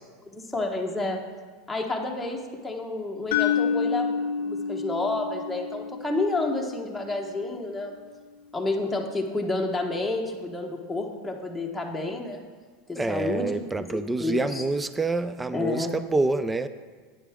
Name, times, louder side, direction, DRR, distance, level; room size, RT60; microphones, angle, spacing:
voice 1, 0.2-1.2 1.7-7.9 8.5-12.4 12.9-13.5 13.9-14.6 15.5-15.9, left 2 dB, 5° left, -1 dB, 1.1 m, -30 dB
sound 1, 3.3-7.4, left 6 dB, 80° left, 0.6 m, -29 dB
voice 2, 13.0-16.7, right 3 dB, 10° right, 12 dB, 0.4 m, -27 dB
9.6 x 8.8 x 3.6 m, 1.5 s
supercardioid pair, 130°, 0 cm